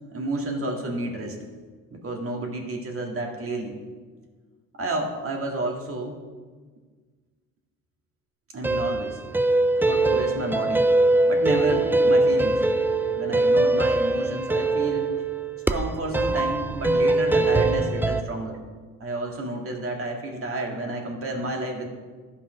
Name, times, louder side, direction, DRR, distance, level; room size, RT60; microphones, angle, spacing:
voice 1, 0.1-1.3 1.9-3.8 4.8-6.2 8.5-9.2 9.8-10.9 11.3-12.6 13.1-15.1 15.7-18.6 19.0-21.9, right 2 dB, 40° right, 1 dB, 2.1 m, -31 dB
sound 1, 8.6-18.2, right 2 dB, 5° right, 0.3 m, -22 dB
12.0 x 5.6 x 5.2 m, 1.5 s
cardioid pair, 95°, 35 cm